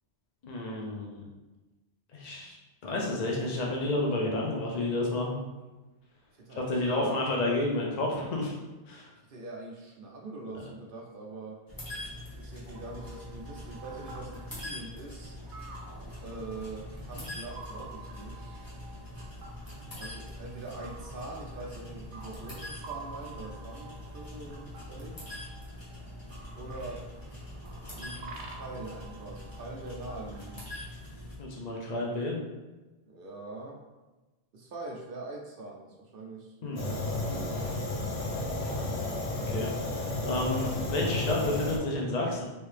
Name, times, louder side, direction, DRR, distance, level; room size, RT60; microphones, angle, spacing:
voice 1, 0.4-1.2 2.1-2.6 2.8-5.4 6.6-8.6 8.9-9.1 31.4-32.4 36.6-36.8 39.5-42.4, left 2 dB, 50° left, -2 dB, 0.6 m, -30 dB
voice 2, 6.3-7.2 9.3-11.6 12.3-15.4 16.2-18.6 20.0-25.3 26.6-27.1 28.0-30.8 33.1-33.8 34.5-37.6, right 2 dB, 60° right, -1 dB, 0.7 m, -43 dB
sound 1, 11.7-31.4, left 1 dB, 20° left, 0.9 m, -43 dB
sound 2, 12.7-30.6, right 3 dB, 85° right, 0.9 m, -49 dB
Fire, 36.8-41.8, left 2 dB, 70° left, 0.9 m, -32 dB
3.2 x 2.7 x 3.2 m, 1.2 s
omnidirectional pair, 1.1 m